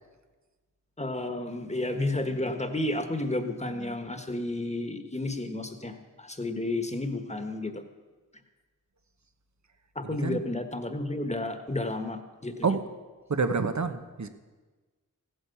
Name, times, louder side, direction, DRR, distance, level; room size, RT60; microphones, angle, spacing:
voice 1, 1.0-7.8 9.9-12.7, left 2 dB, 20° left, 7 dB, 1.5 m, -32 dB
voice 2, 10.0-10.4 12.6-12.8 13.3-14.3, right 4 dB, 55° right, 9 dB, 1.1 m, -28 dB
15.5 x 9.5 x 7.1 m, 1.3 s
wide cardioid pair, 50°, 34 cm